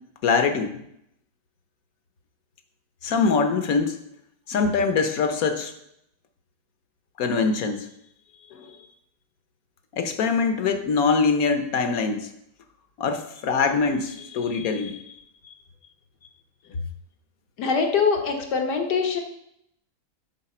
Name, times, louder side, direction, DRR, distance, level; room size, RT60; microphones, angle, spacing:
voice 1, 0.2-0.7 3.0-4.0 4.5-5.7 7.2-7.9 8.5-8.7 9.9-12.3 13.0-15.2, left 5 dB, 60° left, 7 dB, 1.3 m, -23 dB
voice 2, 17.6-19.2, left 5 dB, 80° left, 3 dB, 1.8 m, -23 dB
11.0 x 4.4 x 4.4 m, 0.76 s
omnidirectional pair, 1.8 m